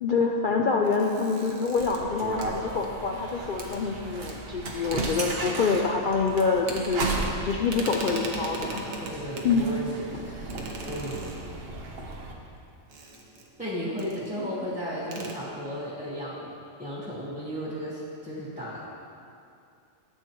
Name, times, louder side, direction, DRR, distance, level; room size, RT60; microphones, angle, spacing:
voice 1, 0.0-7.2 7.4-8.9 9.4-9.7, left 4 dB, 65° left, 1 dB, 0.5 m, -26 dB
sound 1, 0.8-3.2 3.6-3.8 4.3-4.4 4.7-5.7 6.0-7.4 7.6-9.6 10.5-11.8 12.9-13.6 14.0-14.3 14.6-14.7 15.0-15.3, right 2 dB, 90° right, 1.4 m, -39 dB
sound 2, 1.8-12.3, right 2 dB, 50° right, 1.1 m, -35 dB
voice 2, 9.0-11.3 12.9-13.1 13.6-16.5 16.8-18.8, equal, 5° right, -10 dB, 1.3 m, -35 dB
12.5 x 7.9 x 3.0 m, 2.5 s
omnidirectional pair, 1.4 m